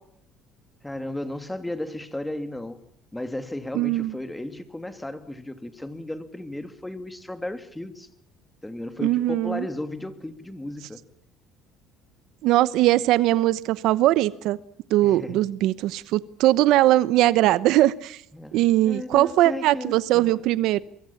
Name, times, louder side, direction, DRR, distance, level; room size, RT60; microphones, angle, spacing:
voice 1, 0.8-2.8 3.1-8.1 8.6-11.0 15.0-15.4 18.3-20.4, left 1 dB, 10° left, 9 dB, 2.7 m, -34 dB
voice 2, 3.7-4.1 9.0-9.7 12.4-14.6 14.9-18.2 18.5-20.8, right 15 dB, 70° right, 17 dB, 0.9 m, -20 dB
23.5 x 23.0 x 7.3 m, 0.67 s
cardioid pair, 105°, 0 cm